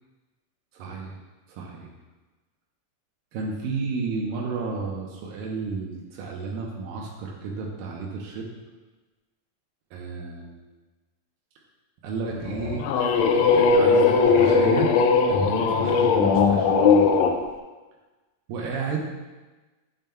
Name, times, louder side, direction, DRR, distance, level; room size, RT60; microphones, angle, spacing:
voice 1, 0.7-1.1 1.5-1.9 3.3-8.5 9.9-10.6 12.0-15.0 15.3-16.8 18.5-19.0, right 4 dB, 85° right, -1 dB, 2.6 m, -32 dB
sound 1, 12.5-17.3, left 5 dB, 90° left, 1.5 m, -19 dB
9.0 x 7.0 x 2.2 m, 1.2 s
omnidirectional pair, 3.9 m